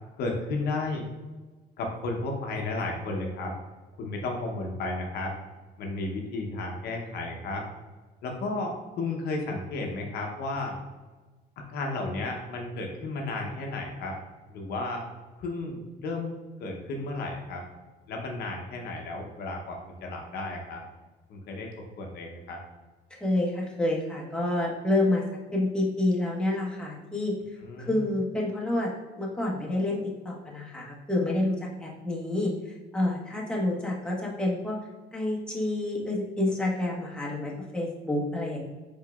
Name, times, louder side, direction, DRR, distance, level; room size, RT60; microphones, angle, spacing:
voice 1, 0.2-1.1 1.8-3.6 4.0-5.3 5.8-7.7 8.2-10.8 11.7-14.2 14.5-15.0 15.4-16.3 16.6-17.6 18.1-20.8 21.3-21.7 22.0-22.6 27.6-28.0, left 2 dB, 70° left, 1 dB, 0.7 m, -33 dB
voice 2, 23.1-25.2 25.5-27.3 27.9-28.9 29.2-32.5 32.9-34.8 35.1-38.6, left 1 dB, 5° left, -4 dB, 1.1 m, -28 dB
4.6 x 4.4 x 2.3 m, 1.3 s
cardioid pair, 110°, 17 cm